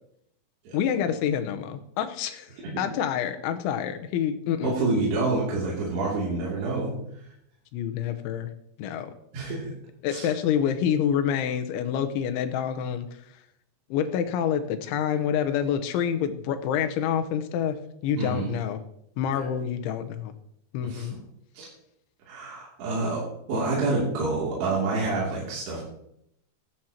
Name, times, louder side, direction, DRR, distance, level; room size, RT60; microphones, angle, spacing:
voice 1, 0.7-2.5 2.8-4.7 7.7-8.5 8.8-9.1 10.0-13.1 13.9-18.8 19.2-20.3 20.7-21.1, left 8 dB, 85° left, 7 dB, 3.3 m, -27 dB
voice 2, 4.6-6.9 9.3-9.6 10.1-10.3 18.2-18.6 19.3-19.4 20.8-21.1 21.5-21.7 22.3-23.2 23.5-25.8, right 3 dB, 65° right, -5 dB, 4.8 m, -27 dB
15.5 x 12.5 x 2.9 m, 0.75 s
omnidirectional pair, 5.3 m